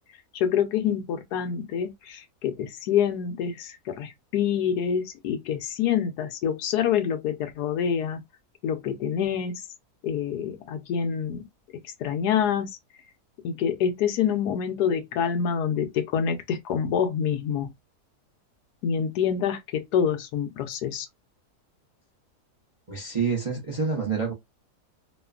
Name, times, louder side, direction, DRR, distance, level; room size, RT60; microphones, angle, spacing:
voice 1, 0.3-8.2 8.6-9.7 10.0-11.4 11.8-12.7 13.4-17.7 18.8-21.1, left 8 dB, 85° left, 1.2 m, -26 dB
voice 2, 22.9-24.3, right 5 dB, 40° right, 0.5 m, -27 dB
3.0 x 2.2 x 2.3 m
omnidirectional pair, 1.7 m